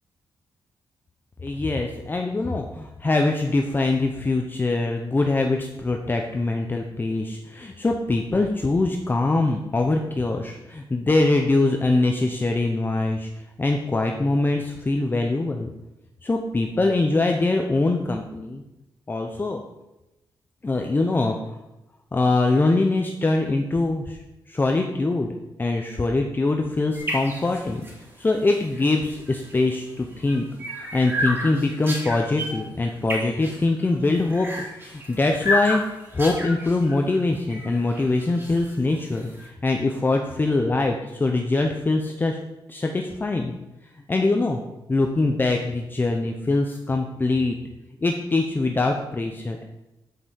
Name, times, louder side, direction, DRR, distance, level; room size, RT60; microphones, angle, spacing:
voice 1, 1.4-13.3 13.6-15.7 16.2-18.6 19.1-19.6 20.6-21.6 22.1-24.2 24.5-25.3 25.6-27.8 28.2-30.5 30.9-34.5 34.8-35.8 36.1-42.4 42.7-43.6 44.1-44.6 44.9-47.6 48.0-49.6, left 2 dB, 25° left, 3 dB, 0.8 m, -23 dB
sound 1, 26.9-39.5, left 1 dB, 25° right, 3.3 m, -32 dB
7.9 x 5.5 x 6.3 m, 0.95 s
cardioid pair, 110°, 8 cm